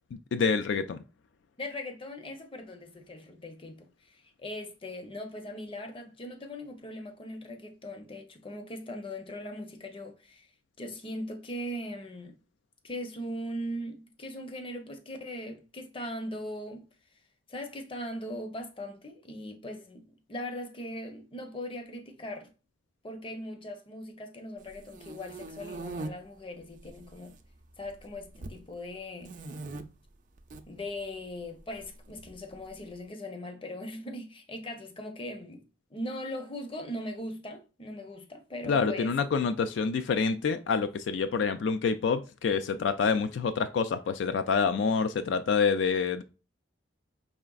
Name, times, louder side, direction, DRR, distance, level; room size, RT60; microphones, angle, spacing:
voice 1, 0.3-1.0 38.7-46.2, left 5 dB, 80° left, 0.3 m, -27 dB
voice 2, 1.6-10.5 10.8-12.4 12.8-16.9 17.5-22.5 23.0-27.3 27.8-29.4 30.7-35.7 35.9-39.1, left 1 dB, 30° left, 0.7 m, -40 dB
sound 1, 24.7-26.1 26.8-27.4 27.6-28.6 29.2-29.8 30.4-30.6 31.8-32.7, right 2 dB, 45° right, 0.4 m, -41 dB
4.9 x 3.2 x 2.3 m
head